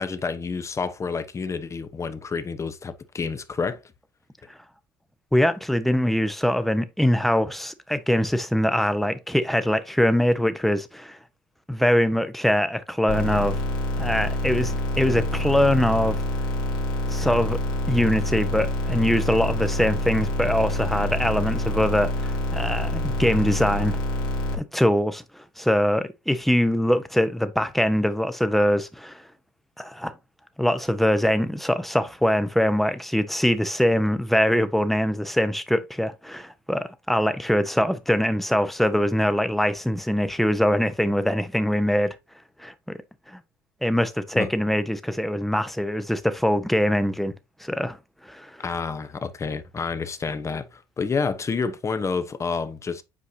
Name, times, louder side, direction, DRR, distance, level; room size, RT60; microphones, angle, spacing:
voice 1, 0.0-3.8 44.3-44.5 48.6-53.0, left 5 dB, 25° left, 0.9 m, -29 dB
voice 2, 5.3-11.2 11.7-13.6 14.0-16.2 17.1-17.6 17.9-24.0 24.5-29.2 29.8-30.1 30.6-42.1 42.6-43.0 43.3-43.4 43.8-47.3 47.6-48.0 48.2-48.5, equal, ahead, 0.9 m, -23 dB
sound 1, 13.1-24.5, left 1 dB, 90° left, 2.2 m, -27 dB
8.4 x 4.7 x 2.8 m
supercardioid pair, 80°, 11 cm